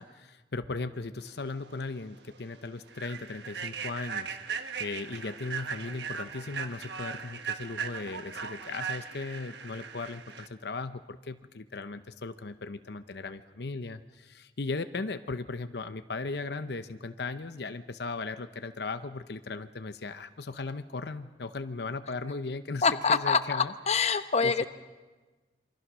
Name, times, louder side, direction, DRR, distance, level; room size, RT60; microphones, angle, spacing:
voice 1, 0.0-23.7 24.1-24.6, left 3 dB, 65° left, 10 dB, 0.8 m, -37 dB
Human voice / Train, 1.6-1.7 2.2-2.4 2.9-10.5, right 6 dB, 70° right, 1.3 m, -38 dB
voice 2, 22.8-24.6, left 5 dB, 40° left, 10 dB, 0.9 m, -25 dB
27.5 x 24.5 x 6.2 m, 1.3 s
head